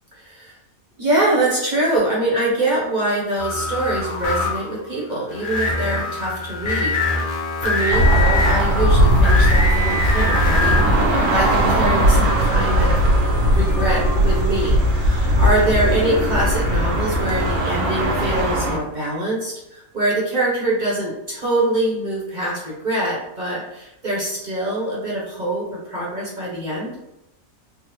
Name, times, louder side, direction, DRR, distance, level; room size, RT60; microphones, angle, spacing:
voice 1, 0.2-0.6 1.0-6.9 7.2-12.9 13.5-26.9, right 1 dB, 40° right, -6 dB, 0.7 m, -24 dB
sound 1, 3.4-4.8 5.3-10.9, left 2 dB, 60° left, 0.5 m, -23 dB
sound 2, 7.9-18.8, equal, 65° right, 1.0 m, -18 dB
sound 3, 9.5-16.3, left 3 dB, 90° left, 1.6 m, -37 dB
3.7 x 2.0 x 3.0 m, 0.90 s
omnidirectional pair, 1.6 m